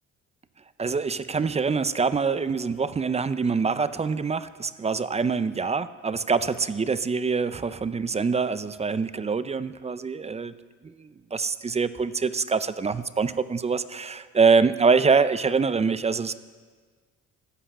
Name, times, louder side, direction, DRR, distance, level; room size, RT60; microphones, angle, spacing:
voice 1, 0.8-10.5 11.3-16.3, right 5 dB, 20° right, 14 dB, 0.4 m, -24 dB
14.0 x 5.7 x 8.3 m, 1.5 s
cardioid pair, 90°, 30 cm